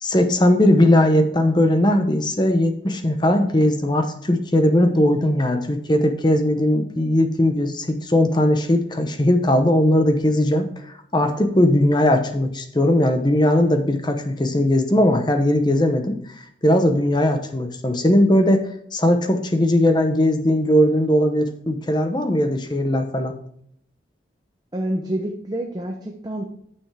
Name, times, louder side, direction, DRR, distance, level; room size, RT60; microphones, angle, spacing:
voice 1, 0.0-10.7 11.1-16.2 16.6-23.3, left 1 dB, 25° left, 6 dB, 0.9 m, -19 dB
voice 2, 24.7-26.4, right 1 dB, 20° right, 2 dB, 0.7 m, -27 dB
9.1 x 6.9 x 3.4 m, 0.67 s
head